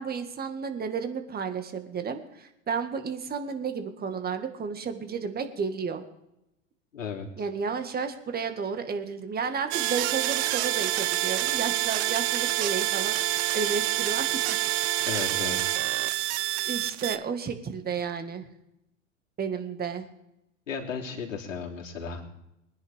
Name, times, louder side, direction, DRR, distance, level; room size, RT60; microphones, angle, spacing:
voice 1, 0.0-6.0 7.4-14.6 16.6-18.5 19.4-20.1, right 5 dB, 25° right, 7 dB, 1.9 m, -32 dB
voice 2, 6.9-7.4 15.0-15.7 20.7-22.2, left 6 dB, 85° left, -1 dB, 3.1 m, -35 dB
sound 1, 9.7-17.2, right 16 dB, 55° right, 0.8 m, -27 dB
22.5 x 10.5 x 3.6 m, 0.86 s
hypercardioid pair, 95°, 38 cm